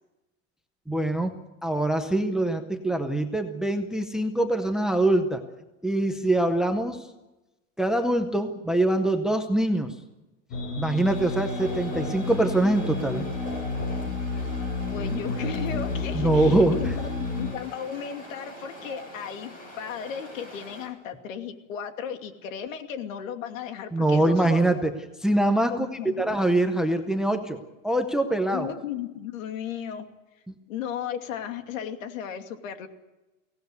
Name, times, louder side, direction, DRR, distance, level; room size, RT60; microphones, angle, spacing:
voice 1, 0.9-1.4 1.6-5.4 5.8-7.1 7.8-9.9 10.8-13.3 16.1-16.9 23.9-24.9 25.2-25.9 26.2-28.7, right 1 dB, ahead, 7 dB, 0.7 m, -24 dB
sound 1, 10.5-17.5, left 3 dB, 40° left, 5.7 m, -30 dB
sound 2, 11.1-20.9, right 1 dB, 20° left, 7.9 m, -43 dB
voice 2, 14.9-24.6 25.7-26.3 28.5-30.1 30.7-32.9, left 8 dB, 75° left, 6 dB, 2.7 m, -35 dB
23.5 x 18.0 x 8.0 m, 1.0 s
supercardioid pair, 170°, 40 cm